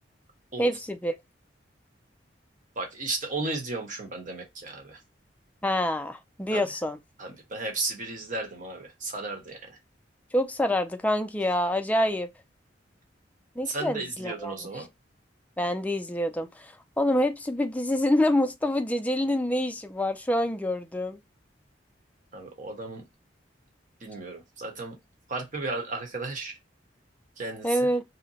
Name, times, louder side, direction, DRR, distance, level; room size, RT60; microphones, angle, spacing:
voice 1, 0.6-1.1 5.6-7.0 10.3-12.3 13.6-14.8 15.6-21.2 27.6-28.0, left 1 dB, 10° left, 0.4 m, -26 dB
voice 2, 2.8-5.0 6.5-6.6 7.2-9.8 13.7-14.9 22.3-23.0 24.0-24.9 25.3-26.6 27.4-27.9, right 3 dB, 45° right, 1.0 m, -34 dB
2.8 x 2.1 x 4.1 m
head